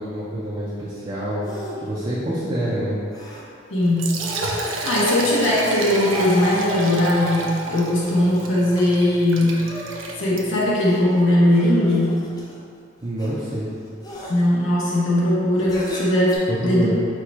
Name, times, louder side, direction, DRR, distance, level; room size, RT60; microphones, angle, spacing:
voice 1, 0.0-1.4 1.8-3.0 13.0-13.7 16.5-16.9, right 1 dB, 25° right, -8 dB, 0.5 m, -26 dB
sound 1, 1.4-1.8 2.2-2.5 3.1-3.4 4.1-5.0 5.9-7.1 8.0-9.2 9.5-12.6 13.2-13.6 14.0-14.3 15.6-16.4, left 1 dB, 20° left, 0.6 m, -34 dB
voice 2, 3.7-4.2 4.8-9.7 10.2-12.2 14.3-17.0, left 1 dB, 90° left, -6 dB, 0.8 m, -19 dB
Liquid, 3.8-10.7, right 2 dB, 90° right, 0.5 m, -30 dB
4.5 x 2.3 x 4.7 m, 2.3 s
head